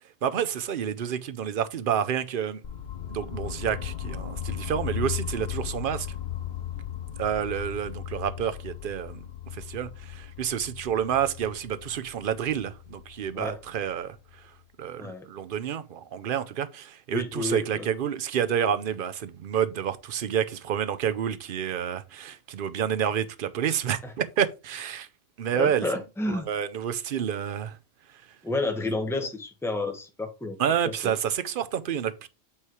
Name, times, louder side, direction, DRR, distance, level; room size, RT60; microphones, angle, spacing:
voice 1, 0.2-2.6 3.1-6.1 7.2-9.2 9.5-14.2 14.8-25.1 25.4-25.8 26.5-27.8 30.6-32.3, right 8 dB, 55° right, 0.8 m, -29 dB
sound 1, 2.6-14.6, left 10 dB, 50° left, 0.7 m, -37 dB
voice 2, 17.1-17.9 24.0-24.1 25.5-26.5 28.4-30.6 30.8-31.1, left 2 dB, ahead, 1.0 m, -30 dB
8.6 x 3.2 x 4.7 m
omnidirectional pair, 1.2 m